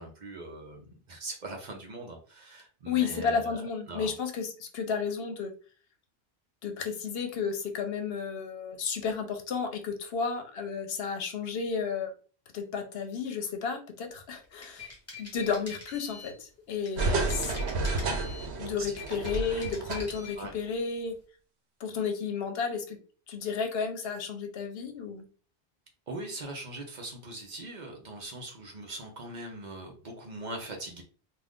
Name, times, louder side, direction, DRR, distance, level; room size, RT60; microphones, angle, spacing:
voice 1, 0.0-3.5 3.9-4.1 18.9-19.0 20.4-20.5 26.1-31.0, right 2 dB, 50° right, 2 dB, 0.7 m, -41 dB
voice 2, 2.9-5.5 6.6-12.1 12.5-14.9 15.2-17.5 18.6-21.2 21.8-23.0 23.3-25.3, left 6 dB, 70° left, 6 dB, 0.8 m, -32 dB
sound 1, 14.4-16.4 16.9-18.5 18.9-20.4, left 4 dB, 15° left, 0.9 m, -44 dB
sound 2, 17.0-20.4 20.7-20.8, right 3 dB, 90° right, 0.9 m, -31 dB
2.4 x 2.3 x 3.5 m, 0.40 s
omnidirectional pair, 1.1 m